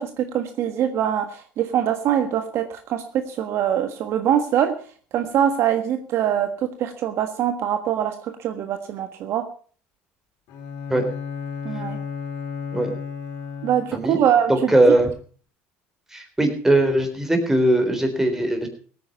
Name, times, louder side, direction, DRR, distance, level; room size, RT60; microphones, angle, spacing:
voice 1, 0.0-4.7 5.1-9.5 11.6-12.0 13.6-14.7, right 10 dB, 55° right, 7 dB, 1.4 m, -23 dB
Bowed string instrument, 10.5-14.2, left 6 dB, 65° left, 3.8 m, -33 dB
voice 2, 14.7-15.1 16.1-18.7, right 1 dB, 10° right, 5 dB, 3.8 m, -19 dB
17.0 x 9.3 x 5.5 m, 0.43 s
supercardioid pair, 100°, 5 cm